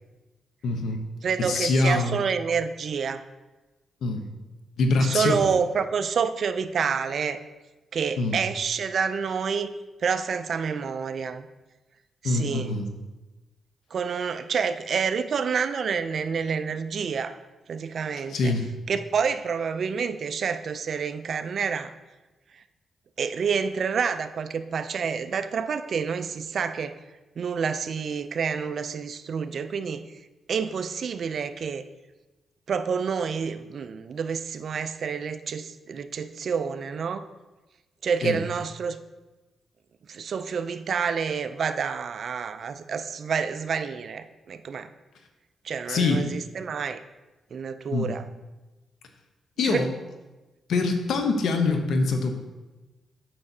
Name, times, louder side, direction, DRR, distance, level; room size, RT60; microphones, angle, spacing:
voice 1, 0.6-1.0 1.5-2.2 4.0-4.2 4.8-5.5 8.2-8.4 12.2-12.9 18.3-18.7 38.2-38.4 45.9-46.3 47.9-48.1 49.6-49.9 50.7-52.4, left 3 dB, 80° left, 5 dB, 0.8 m, -24 dB
voice 2, 1.2-3.2 5.0-7.4 7.9-9.7 10.0-11.5 12.2-12.7 13.9-17.4 17.7-18.5 18.9-21.9 22.5-22.6 23.2-26.9 27.4-30.0 30.5-31.8 32.7-37.2 38.0-39.0 40.1-44.9 45.6-47.0 47.5-48.2 49.6-49.8, right 6 dB, 60° right, 11 dB, 0.4 m, -28 dB
8.5 x 5.7 x 2.7 m, 1.1 s
cardioid pair, 75°, 0 cm